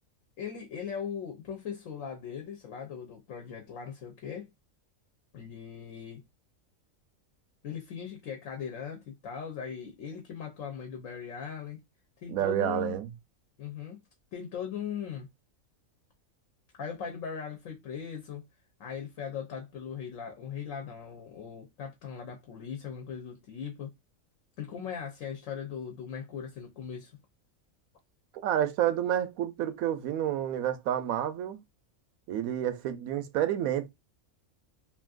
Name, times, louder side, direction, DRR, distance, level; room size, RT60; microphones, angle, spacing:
voice 1, 0.4-4.5 5.3-6.2 7.6-11.8 12.2-12.9 13.6-14.0 14.3-15.3 16.8-18.4 18.8-23.9 24.6-27.1, left 7 dB, 70° left, 1.1 m, -39 dB
voice 2, 12.3-13.1 28.4-31.6 32.3-33.9, right 11 dB, 85° right, 1.0 m, -29 dB
2.9 x 2.6 x 2.3 m
omnidirectional pair, 1.4 m